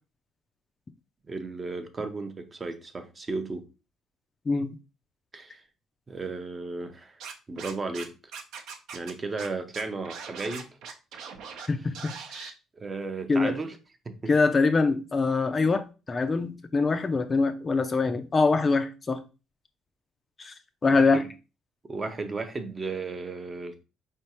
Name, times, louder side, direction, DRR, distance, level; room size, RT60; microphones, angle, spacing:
voice 1, 1.3-3.7 5.3-5.6 6.1-7.2 7.5-8.1 8.9-10.7 12.8-13.8 14.1-14.3 20.9-21.3 21.9-23.8, right 3 dB, 20° right, 0.6 m, -34 dB
Scratching (performance technique), 7.2-8.0 8.3-9.1 9.4-9.5 9.7-11.7 11.9-12.5, right 6 dB, 75° right, 0.7 m, -40 dB
voice 2, 11.7-12.5 13.3-13.6 14.3-19.2 20.4-20.5 20.8-21.3, left 4 dB, 25° left, 0.4 m, -24 dB
4.7 x 3.4 x 2.9 m
cardioid pair, 145°, 0 cm